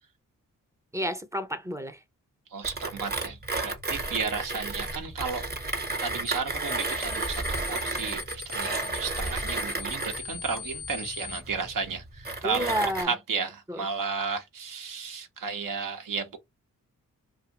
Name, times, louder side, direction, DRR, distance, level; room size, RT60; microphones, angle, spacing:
voice 1, 0.9-2.0 12.4-13.1 13.7-13.8, equal, 10° right, 0.5 m, -30 dB
voice 2, 2.5-5.5 6.0-12.7 13.0-16.4, right 5 dB, 65° right, 0.8 m, -33 dB
Mechanisms, 2.6-13.0, right 2 dB, 25° right, 0.9 m, -33 dB
sound 1, 6.3-6.4 6.7-11.4, left 7 dB, 85° left, 0.5 m, -40 dB
2.6 x 2.3 x 2.8 m
cardioid pair, 50°, 35 cm